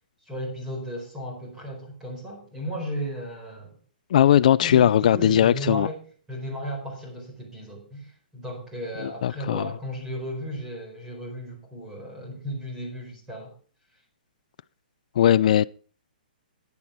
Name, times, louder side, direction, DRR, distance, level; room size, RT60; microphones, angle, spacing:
voice 1, 0.2-3.7 4.6-6.0 6.3-13.5, equal, 10° right, 4.4 m, -35 dB
voice 2, 4.1-5.9 9.0-9.7 15.2-15.7, left 10 dB, 50° left, 0.4 m, -19 dB
11.5 x 9.8 x 4.6 m
hypercardioid pair, 165°, 5 cm